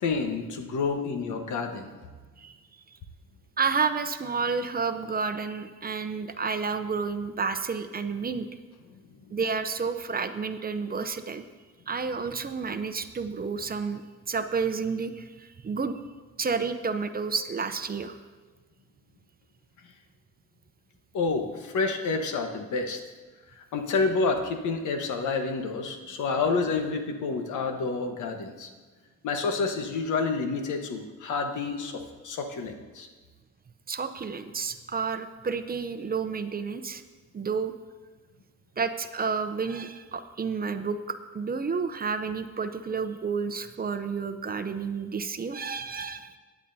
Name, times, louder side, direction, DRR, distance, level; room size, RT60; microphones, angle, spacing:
voice 1, 0.0-1.9 21.1-23.0 23.7-28.7 29.2-33.1, left 4 dB, 75° left, 5 dB, 1.3 m, -29 dB
voice 2, 3.6-8.5 9.3-11.4 11.9-16.0 16.4-18.2 33.9-37.0 37.3-37.7 38.8-46.4, right 5 dB, 30° right, 9 dB, 0.7 m, -30 dB
16.0 x 9.9 x 2.8 m, 1.3 s
cardioid pair, 90°, 30 cm